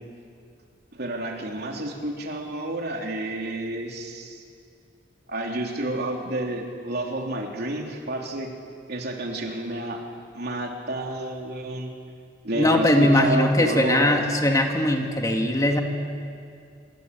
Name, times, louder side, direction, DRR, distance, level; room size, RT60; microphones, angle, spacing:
voice 1, 0.9-4.4 5.3-8.5 8.9-10.0 10.3-11.9 12.4-14.2, right 1 dB, 60° right, 1 dB, 3.4 m, -30 dB
voice 2, 12.5-15.8, left 1 dB, 20° left, 3 dB, 2.2 m, -20 dB
26.5 x 23.5 x 8.4 m, 2.3 s
head